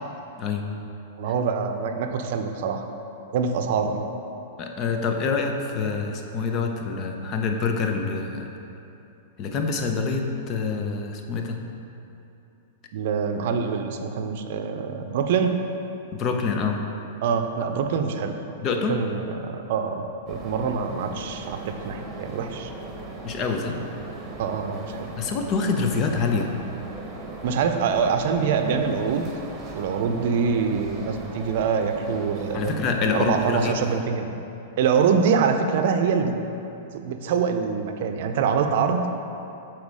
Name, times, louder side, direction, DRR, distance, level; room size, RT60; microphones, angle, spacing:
voice 1, 1.2-2.8 3.3-4.0 12.9-15.6 17.2-18.3 18.9-22.7 24.4-25.1 27.4-29.3 29.7-32.7 33.1-34.3 34.8-36.3 36.9-39.0, right 6 dB, 60° right, 6 dB, 0.6 m, -25 dB
voice 2, 4.6-8.5 9.4-11.6 16.1-16.8 18.6-19.0 23.2-23.8 25.2-26.5 32.5-33.7, left 4 dB, 35° left, 4 dB, 0.7 m, -26 dB
sound 1, 20.3-34.0, right 2 dB, 25° right, 1.2 m, -38 dB
7.2 x 4.5 x 4.8 m, 2.8 s
hypercardioid pair, 120°, 0 cm